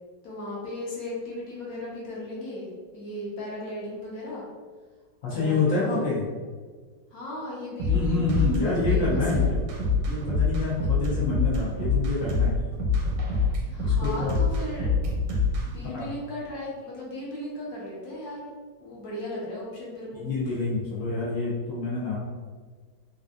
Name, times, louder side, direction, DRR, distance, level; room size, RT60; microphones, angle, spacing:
voice 1, 0.2-4.4 5.3-6.1 7.1-9.5 13.7-14.9 15.6-18.5 18.8-20.2, left 1 dB, 60° left, -5 dB, 1.0 m, -36 dB
voice 2, 5.2-6.2 7.9-9.6 10.1-12.6 13.8-14.4 15.9-16.1 20.1-22.2, left 3 dB, 80° left, -7 dB, 0.7 m, -27 dB
sound 1, 7.8-15.7, left 3 dB, 85° right, 1.5 m, -25 dB
3.4 x 2.5 x 2.4 m, 1.5 s
omnidirectional pair, 2.3 m